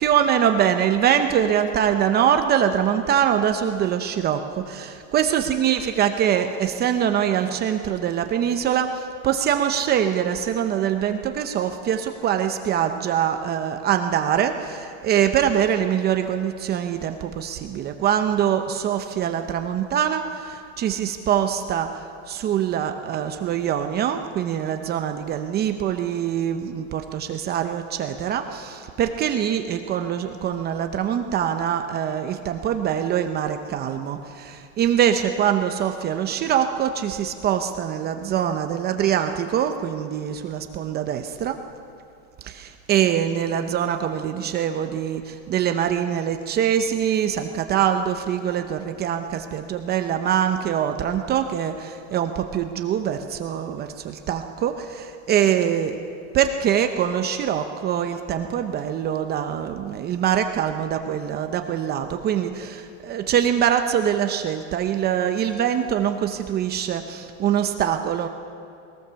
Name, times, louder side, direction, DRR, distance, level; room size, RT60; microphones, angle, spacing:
voice 1, 0.0-41.6 42.4-56.0 56.3-68.3, right 9 dB, 25° right, 6 dB, 0.8 m, -23 dB
20.5 x 19.0 x 7.0 m, 2.5 s
supercardioid pair, 155°, 37 cm